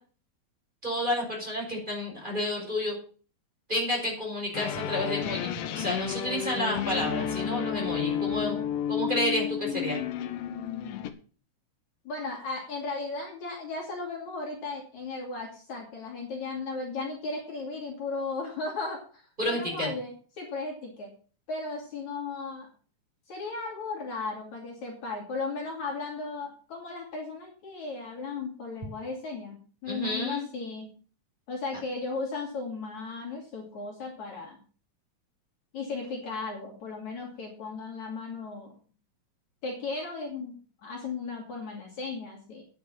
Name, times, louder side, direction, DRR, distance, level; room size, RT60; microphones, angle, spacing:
voice 1, 0.8-3.0 3.7-8.6 8.9-10.0 19.4-19.9 29.9-30.5, left 1 dB, 15° right, -2 dB, 5.0 m, -30 dB
sound 1, 4.5-11.1, left 9 dB, 70° left, 2.4 m, -31 dB
voice 2, 12.1-21.1 21.5-22.7 23.3-30.9 31.5-34.6 35.7-38.8 39.6-40.6 40.8-42.6, left 3 dB, 55° left, 0 dB, 3.9 m, -36 dB
10.0 x 7.5 x 7.3 m, 0.40 s
omnidirectional pair, 4.1 m